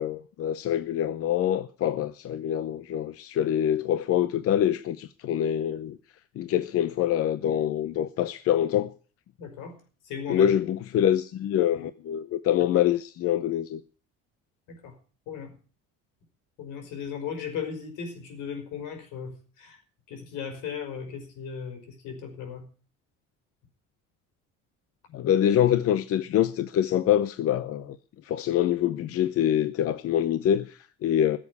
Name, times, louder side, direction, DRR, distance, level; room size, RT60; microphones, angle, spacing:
voice 1, 0.0-6.0 6.4-8.9 10.3-13.8 25.1-28.0 28.2-31.4, left 10 dB, 50° left, 0.7 m, -25 dB
voice 2, 9.4-9.8 10.0-10.5 14.7-15.0 15.3-15.5 16.6-19.8 20.1-22.7, left 7 dB, 80° left, 5.3 m, -37 dB
15.5 x 7.6 x 8.2 m
cardioid pair, 145°, 31 cm